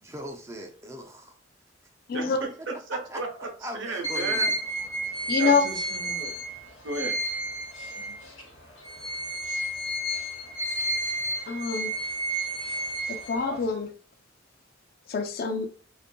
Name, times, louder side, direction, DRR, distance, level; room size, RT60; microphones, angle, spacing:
voice 1, 0.0-1.3 2.6-2.7 3.1-3.2 3.6-4.6, right 1 dB, 15° right, 0.4 m, -39 dB
voice 2, 2.1-4.5 5.4-6.3 6.8-7.2, right 2 dB, 70° right, 0.6 m, -34 dB
sound 1, 4.0-8.4 8.8-13.7, right 1 dB, 85° left, 1.0 m, -31 dB
voice 3, 5.3-5.6 11.5-11.9 13.1-13.9 15.1-15.7, left 5 dB, 50° left, 0.4 m, -25 dB
2.5 x 2.5 x 2.2 m
head